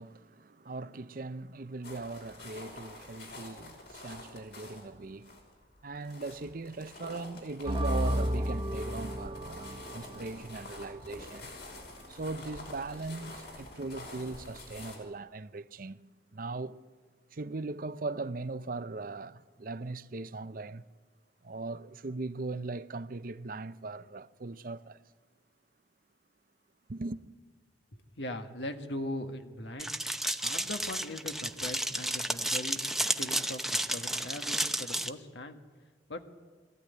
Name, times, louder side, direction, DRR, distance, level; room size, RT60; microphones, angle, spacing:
voice 1, 0.0-5.4 5.8-11.5 12.1-16.0 16.3-16.8 17.3-20.8 21.4-25.0 26.9-27.2, right 3 dB, 50° right, 0.6 m, -39 dB
sound 1, 1.8-15.0, left 2 dB, 65° left, 5.3 m, -48 dB
sound 2, 7.7-14.9, equal, 30° right, 1.1 m, -35 dB
voice 2, 27.9-32.8 33.2-35.6 36.1-36.2, left 1 dB, 80° left, 1.6 m, -40 dB
sound 3, 29.8-35.1, right 1 dB, ahead, 0.7 m, -32 dB
22.5 x 15.0 x 9.5 m
head